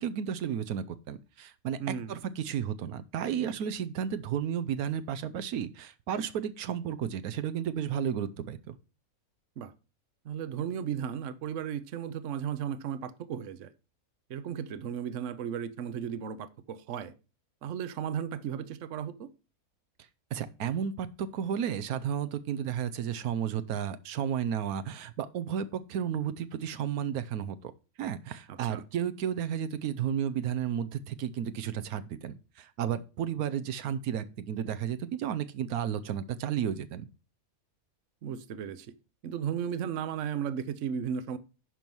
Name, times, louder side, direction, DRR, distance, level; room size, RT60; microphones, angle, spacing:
voice 1, 0.0-8.7 20.3-27.7 28.0-37.1, right 9 dB, 85° right, 1.2 m, -33 dB
voice 2, 1.8-2.1 9.6-9.7 10.2-13.7 14.3-17.1 17.6-19.3 28.5-28.8 38.2-38.9 39.2-41.4, right 8 dB, 60° right, 1.0 m, -35 dB
10.5 x 4.6 x 5.4 m
omnidirectional pair, 1.5 m